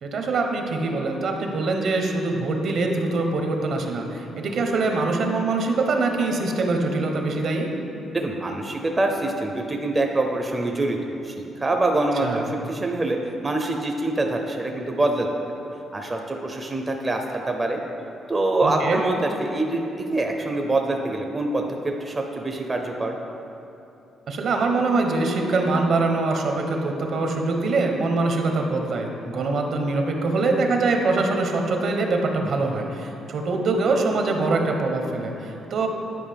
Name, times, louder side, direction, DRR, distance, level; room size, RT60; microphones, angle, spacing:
voice 1, 0.0-7.7 12.2-12.4 18.6-19.0 24.3-35.9, right 3 dB, 65° right, 3 dB, 0.8 m, -23 dB
voice 2, 8.1-11.0 11.2-13.2 13.4-15.3 15.9-17.8 18.3-19.9 20.1-23.2, right 2 dB, 25° right, 2 dB, 0.6 m, -25 dB
9.5 x 5.0 x 3.4 m, 2.9 s
cardioid pair, 90°, 0 cm